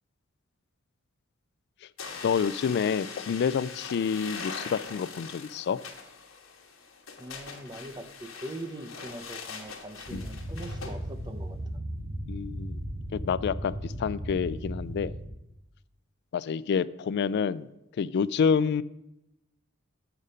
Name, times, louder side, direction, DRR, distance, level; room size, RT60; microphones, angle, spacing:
sound 1, 2.0-11.0, left 5 dB, 85° left, 1.2 m, -42 dB
voice 1, 2.2-5.8 10.1-10.3 12.3-12.8 13.1-15.1 16.3-17.7 18.0-18.8, left 6 dB, 55° left, 18 dB, 0.3 m, -28 dB
voice 2, 7.2-11.6, right 1 dB, 20° right, 9 dB, 0.6 m, -42 dB
sound 2, 10.0-15.3, equal, 65° right, 2.2 m, -36 dB
8.0 x 5.0 x 5.5 m, 0.87 s
head